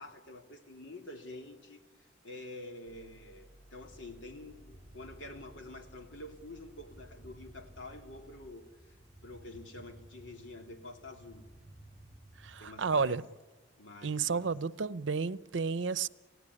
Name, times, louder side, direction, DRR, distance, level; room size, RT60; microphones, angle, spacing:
voice 1, 0.0-9.0 9.2-11.5 12.6-13.2 13.8-14.7, left 2 dB, 90° left, 3.0 m, -48 dB
sound 1, 2.9-8.6, right 1 dB, 40° left, 7.7 m, -58 dB
sound 2, 3.8-13.1, right 1 dB, 20° left, 1.9 m, -57 dB
voice 2, 12.4-13.2 14.0-16.1, right 5 dB, 85° right, 0.7 m, -31 dB
29.0 x 16.5 x 9.9 m
head